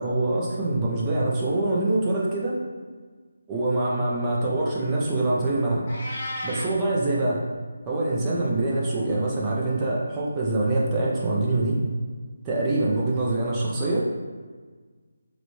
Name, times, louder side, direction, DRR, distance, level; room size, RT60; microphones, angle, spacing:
voice 1, 0.0-2.6 3.5-5.9 6.4-7.4 7.9-11.8 12.4-14.0, right 2 dB, 15° right, -5 dB, 0.4 m, -24 dB
Meow, 5.9-6.7, left 1 dB, 30° left, 0.7 m, -33 dB
3.9 x 2.2 x 3.0 m, 1.5 s
figure-of-eight pair, 170°, 0 cm